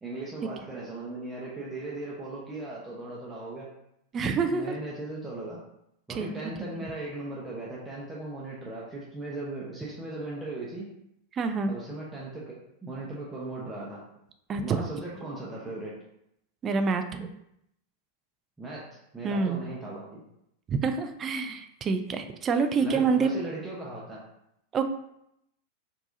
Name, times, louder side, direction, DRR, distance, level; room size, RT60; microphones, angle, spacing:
voice 1, 0.0-3.7 4.4-5.6 6.1-10.9 11.7-14.0 14.6-15.9 18.6-20.2 22.8-24.2, right 2 dB, 10° right, -6 dB, 1.0 m, -38 dB
voice 2, 4.1-4.7 6.1-6.3 6.6-6.7 11.3-11.7 14.5-14.9 16.6-17.3 19.2-19.6 20.7-23.3 24.7-24.8, right 5 dB, 25° right, 8 dB, 0.4 m, -27 dB
4.6 x 3.9 x 2.7 m, 0.78 s
figure-of-eight pair, 90°, 0 cm